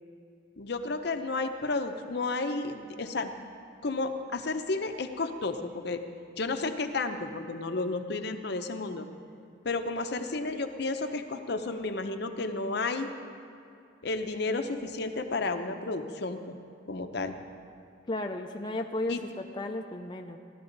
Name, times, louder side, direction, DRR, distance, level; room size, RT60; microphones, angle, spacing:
voice 1, 0.6-3.3 3.8-6.0 6.4-9.1 9.6-13.1 14.0-16.5 16.9-17.3 19.1-19.2, left 3 dB, 60° left, 7 dB, 0.7 m, -32 dB
voice 2, 18.1-20.4, left 2 dB, 25° left, 3 dB, 0.5 m, -34 dB
16.5 x 12.0 x 3.9 m, 2.6 s
head